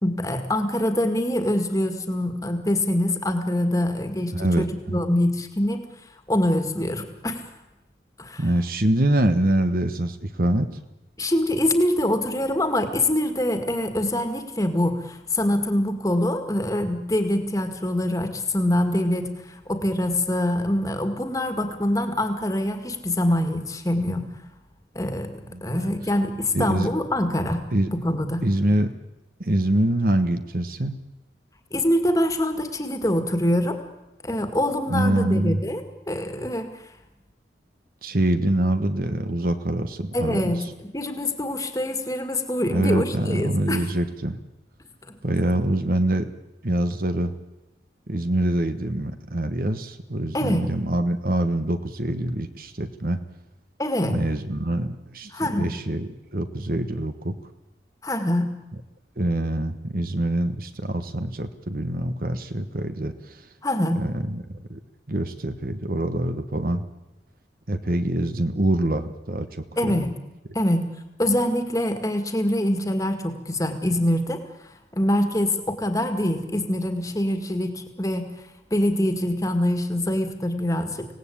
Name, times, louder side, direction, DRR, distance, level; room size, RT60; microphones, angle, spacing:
voice 1, 0.0-5.8 6.3-7.4 8.2-8.4 11.2-19.3 19.7-24.3 24.9-25.3 25.6-28.4 31.7-33.8 34.2-36.7 40.1-43.8 45.1-45.2 50.3-50.6 53.8-54.2 55.3-55.7 58.0-58.5 63.6-64.0 69.8-70.1 70.5-70.8 71.2-74.4 74.9-78.2 78.7-81.1, left 1 dB, 20° left, 7 dB, 2.0 m, -24 dB
voice 2, 4.3-5.0 8.4-10.7 25.5-25.9 26.5-26.9 27.7-27.9 28.4-28.9 29.4-31.0 34.9-35.6 38.0-40.7 42.7-44.4 45.2-46.3 46.6-47.3 48.1-53.2 54.1-57.3 59.2-63.4 63.9-64.8 65.1-66.8 67.7-70.1, right 1 dB, 50° right, 9 dB, 1.2 m, -25 dB
25.5 x 18.0 x 8.6 m, 1.0 s
head